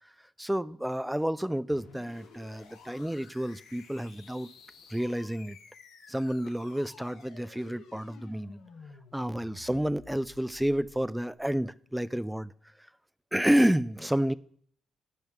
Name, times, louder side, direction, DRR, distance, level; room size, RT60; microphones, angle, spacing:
voice 1, 0.4-4.5 4.9-5.6 6.1-8.6 9.1-12.5 13.3-14.3, equal, 5° right, 0.4 m, -29 dB
sound 1, 1.7-11.4, left 5 dB, 85° left, 3.0 m, -53 dB
17.5 x 5.9 x 3.6 m
cardioid pair, 90°, 0 cm